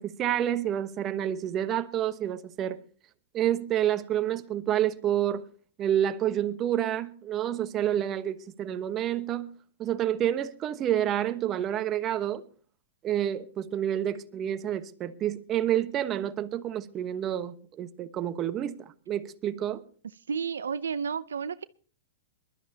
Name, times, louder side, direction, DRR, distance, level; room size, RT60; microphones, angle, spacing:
voice 1, 0.0-2.8 3.3-5.5 5.8-9.5 9.8-12.4 13.0-19.8, right 11 dB, 30° right, 1.2 m, -29 dB
voice 2, 20.3-21.6, right 6 dB, 85° right, 0.6 m, -31 dB
22.5 x 12.5 x 2.9 m
hypercardioid pair, 125°, 0 cm